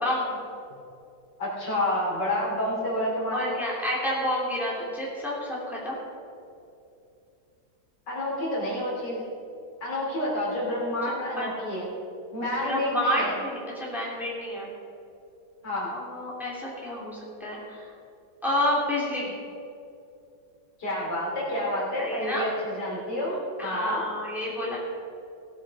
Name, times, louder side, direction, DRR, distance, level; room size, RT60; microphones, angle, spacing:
voice 1, 0.0-0.4 3.3-6.0 11.4-11.7 12.6-14.7 15.9-17.9 18.4-19.4 22.0-22.5 23.6-24.8, left 1 dB, ahead, -5 dB, 2.9 m, -29 dB
voice 2, 1.4-3.5 8.1-9.2 9.8-11.9 12.3-13.3 15.6-15.9 20.8-24.1, left 1 dB, 65° left, -5 dB, 3.8 m, -29 dB
17.5 x 8.3 x 4.9 m, 2.6 s
omnidirectional pair, 2.0 m